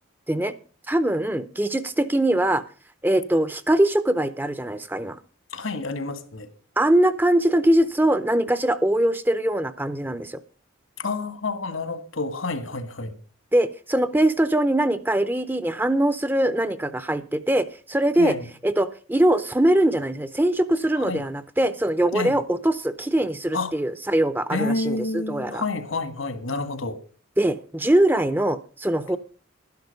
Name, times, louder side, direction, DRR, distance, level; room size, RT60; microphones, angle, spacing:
voice 1, 0.9-2.6 3.0-5.2 6.8-10.4 13.5-18.4 18.6-25.6 27.4-29.2, right 1 dB, 10° right, 0.5 m, -22 dB
voice 2, 5.5-6.5 11.0-13.2 18.2-18.4 21.0-21.2 22.1-22.4 23.5-23.7 24.5-27.0, left 3 dB, 75° left, 1.7 m, -29 dB
12.5 x 10.5 x 5.3 m
head